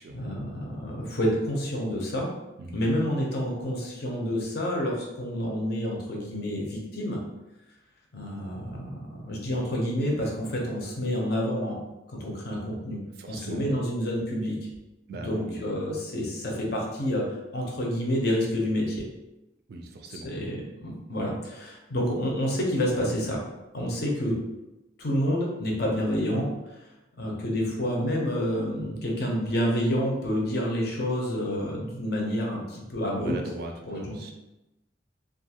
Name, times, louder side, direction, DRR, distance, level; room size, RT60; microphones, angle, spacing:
voice 1, 0.1-2.3 2.7-7.2 8.1-11.8 12.1-13.0 13.3-14.6 15.1-17.2 17.5-19.0 20.1-23.4 23.7-24.4 25.0-26.5 27.2-33.3 33.9-34.3, equal, 55° left, -1 dB, 0.6 m, -28 dB
voice 2, 13.2-13.8 15.1-15.6 19.7-20.3 33.2-34.3, right 2 dB, 55° right, 3 dB, 0.3 m, -39 dB
2.5 x 2.3 x 2.8 m, 0.97 s
head